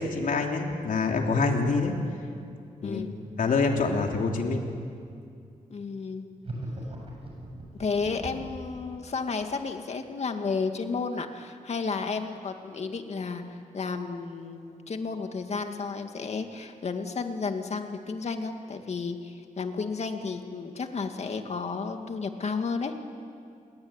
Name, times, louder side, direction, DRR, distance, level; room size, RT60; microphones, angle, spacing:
voice 1, 0.0-1.9 2.8-3.0 3.4-4.6, left 4 dB, 75° left, 2 dB, 3.4 m, -26 dB
voice 2, 2.8-3.2 5.7-6.2 7.8-22.9, left 4 dB, 50° left, 5 dB, 2.2 m, -32 dB
sound 1, 6.4-8.6, right 1 dB, 45° right, 7.7 m, -38 dB
29.5 x 22.0 x 9.0 m, 2.4 s
wide cardioid pair, 125°, 14 cm